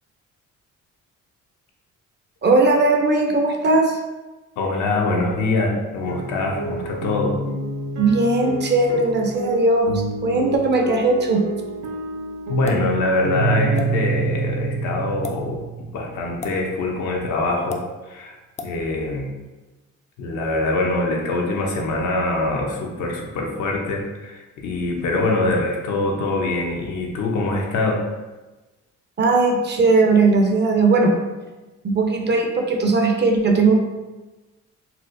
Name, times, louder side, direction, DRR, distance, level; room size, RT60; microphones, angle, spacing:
voice 1, 2.4-4.0 8.0-11.4 29.2-31.1 31.8-33.7, right 3 dB, 35° right, 2 dB, 0.5 m, -18 dB
voice 2, 4.6-7.3 12.5-18.4 18.6-19.3 20.2-28.0, left 2 dB, 75° left, 1 dB, 0.7 m, -24 dB
sound 1, 6.0-15.3, equal, 75° right, 0.6 m, -29 dB
sound 2, 12.7-12.9 13.8-13.9 15.1-15.4 16.4-16.6 17.7-17.8 18.6-18.7, left 4 dB, 25° left, 0.3 m, -32 dB
Keyboard (musical), 13.3-16.4, right 8 dB, 60° right, 1.0 m, -27 dB
4.2 x 2.0 x 2.5 m, 1.2 s
cardioid pair, 90°, 30 cm